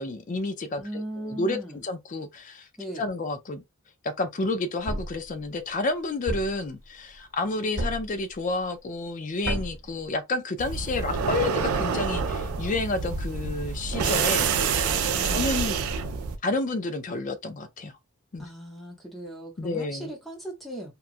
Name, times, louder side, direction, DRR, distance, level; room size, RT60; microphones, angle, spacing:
voice 1, 0.0-2.7 3.0-3.6 4.0-15.8 16.4-17.9 18.3-18.5 19.6-20.1, left 2 dB, 35° left, 0.4 m, -30 dB
voice 2, 0.8-1.8 2.8-3.1 15.1-15.7 18.4-20.9, right 1 dB, ahead, 0.7 m, -38 dB
Thump thud, 4.9-5.2 6.3-6.6 7.8-8.2 9.4-9.9, right 1 dB, 55° right, 1.0 m, -30 dB
sound 1, 10.6-16.4, right 6 dB, 85° right, 0.4 m, -27 dB
2.9 x 2.3 x 2.4 m
head